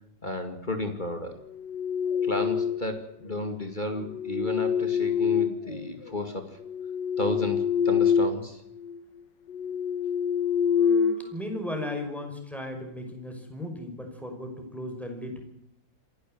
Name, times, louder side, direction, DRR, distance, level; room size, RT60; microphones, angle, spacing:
voice 1, 0.2-1.4 2.2-6.6 7.2-8.6 11.2-11.3, left 1 dB, 25° left, 6 dB, 2.4 m, -33 dB
sound 1, 1.5-3.0 4.0-6.1 6.6-8.5 8.8-9.0 9.5-11.9, left 7 dB, 85° left, 1.8 m, -26 dB
voice 2, 10.7-15.4, left 1 dB, ahead, 3 dB, 5.5 m, -36 dB
27.5 x 12.0 x 9.4 m, 0.78 s
omnidirectional pair, 1.9 m